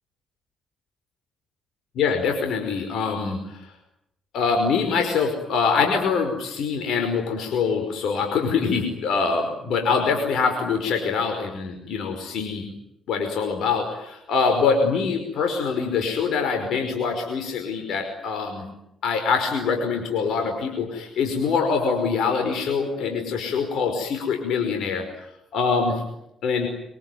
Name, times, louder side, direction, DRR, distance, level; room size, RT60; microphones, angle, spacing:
voice 1, 2.0-3.7 4.3-12.7 13.1-18.7 19.0-25.1 25.5-26.0 26.4-26.7, left 5 dB, 75° left, 5 dB, 5.3 m, -24 dB
25.0 x 25.0 x 9.5 m, 0.84 s
cardioid pair, 90°, 0 cm